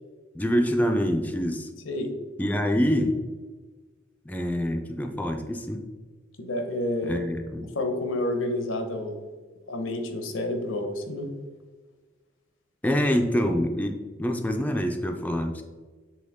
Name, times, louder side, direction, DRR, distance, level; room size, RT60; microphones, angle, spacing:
voice 1, 0.3-1.7 2.4-3.2 4.3-5.8 7.1-7.7 12.8-15.6, equal, 10° left, 4 dB, 0.4 m, -26 dB
voice 2, 6.4-7.3 7.7-9.2 9.7-11.3, left 1 dB, 85° left, 5 dB, 0.9 m, -29 dB
7.6 x 3.5 x 3.5 m, 1.4 s
head